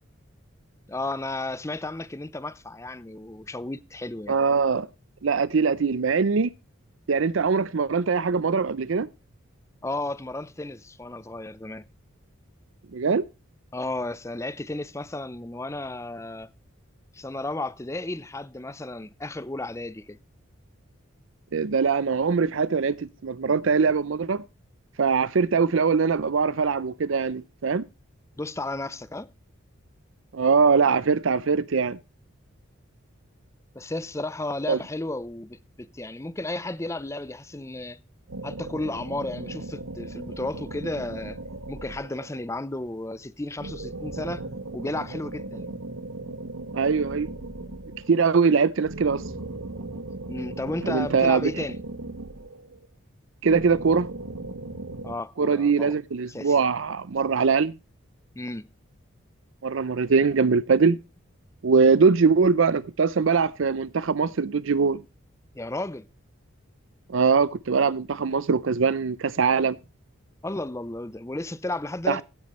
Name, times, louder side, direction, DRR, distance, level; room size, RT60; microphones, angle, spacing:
voice 1, 0.9-4.4 9.8-11.9 13.7-16.5 17.1-20.2 28.4-29.3 33.7-38.0 38.4-41.4 41.7-44.5 44.7-45.7 50.3-51.8 55.0-55.9 56.3-56.6 57.3-57.4 58.4-58.7 65.6-66.1 70.4-72.2, left 2 dB, 15° left, 0.5 m, -33 dB
voice 2, 4.3-4.9 5.2-6.5 7.1-9.1 12.9-13.2 21.5-24.4 25.0-27.8 30.3-32.0 34.7-34.8 46.7-47.3 48.1-49.2 50.8-51.5 53.4-54.1 55.4-57.7 59.6-61.0 61.6-65.0 67.1-69.8 72.1-72.2, right 5 dB, 65° right, 0.5 m, -22 dB
sound 1, 38.3-42.5 43.6-48.2 48.8-52.9 53.5-55.1, right 2 dB, 90° right, 1.6 m, -37 dB
16.0 x 9.4 x 3.1 m
head